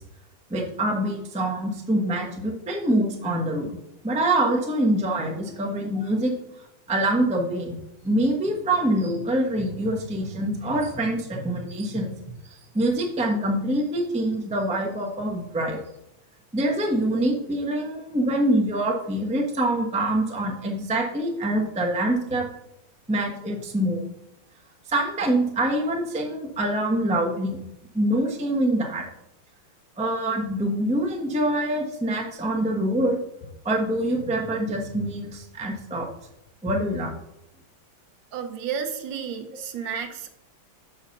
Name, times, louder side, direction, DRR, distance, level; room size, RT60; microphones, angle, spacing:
voice 1, 0.5-3.8 4.0-6.3 6.9-7.8 8.0-12.1 12.4-15.8 16.5-22.5 23.1-24.0 24.9-27.6 27.9-29.0 30.0-33.2 33.6-36.1 36.6-37.1, right 1 dB, 5° right, 0 dB, 0.5 m, -25 dB
voice 2, 38.3-40.3, right 7 dB, 70° right, 6 dB, 1.3 m, -32 dB
5.8 x 5.5 x 5.8 m, 0.84 s
omnidirectional pair, 2.3 m